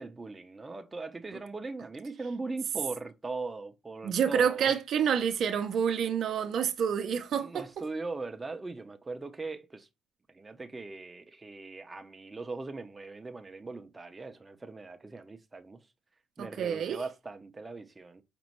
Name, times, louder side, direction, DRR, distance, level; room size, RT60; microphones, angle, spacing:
voice 1, 0.0-4.7 7.3-9.9 10.3-15.8 16.4-18.2, right 3 dB, 20° right, 0.6 m, -40 dB
voice 2, 4.0-7.7 16.4-17.0, right 8 dB, 65° right, 0.6 m, -28 dB
5.2 x 3.0 x 3.0 m
cardioid pair, 90°, 0 cm